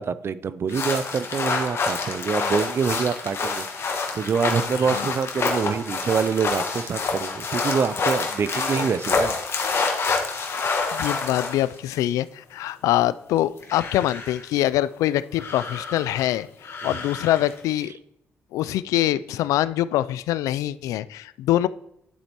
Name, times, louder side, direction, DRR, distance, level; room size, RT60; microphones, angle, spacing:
voice 1, 0.0-9.8 16.8-17.0, right 6 dB, 50° right, 16 dB, 0.5 m, -26 dB
sound 1, 0.7-12.0 13.4-14.4 15.4-16.3 16.6-17.6, left 4 dB, 50° left, 1.6 m, -27 dB
voice 2, 4.7-5.1 10.5-17.9 18.5-21.7, left 14 dB, 80° left, 17 dB, 0.4 m, -24 dB
11.0 x 7.7 x 3.0 m, 0.79 s
supercardioid pair, 60°, 6 cm